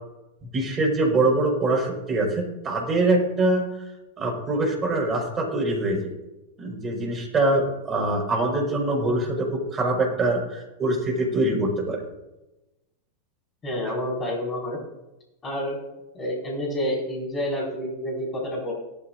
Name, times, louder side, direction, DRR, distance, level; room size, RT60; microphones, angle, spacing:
voice 1, 0.5-3.8 4.2-6.1 6.6-12.0, right 2 dB, 20° right, 0 dB, 5.1 m, -24 dB
voice 2, 13.6-14.8 15.4-15.8 16.1-18.7, equal, 20° left, -3 dB, 5.2 m, -29 dB
18.0 x 13.5 x 2.6 m, 0.99 s
figure-of-eight pair, 90°, 0 cm